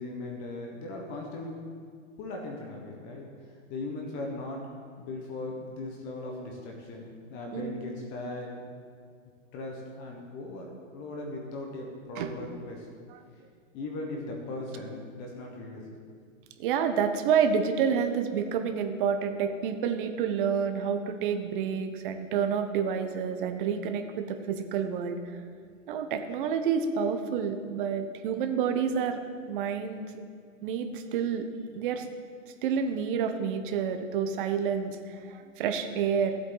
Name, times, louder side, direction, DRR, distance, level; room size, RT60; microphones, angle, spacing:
voice 1, 0.0-1.5 2.2-3.3 3.7-4.6 5.0-7.0 7.3-8.5 9.5-10.7 10.9-12.9 13.7-15.8, left 2 dB, 30° left, 1 dB, 1.3 m, -38 dB
voice 2, 16.6-25.4 25.9-29.2 29.5-30.1 30.6-31.4 31.7-32.0 32.6-36.4, right 7 dB, 40° right, 7 dB, 1.1 m, -29 dB
15.5 x 8.1 x 4.0 m, 2.1 s
hypercardioid pair, 145°, 40 cm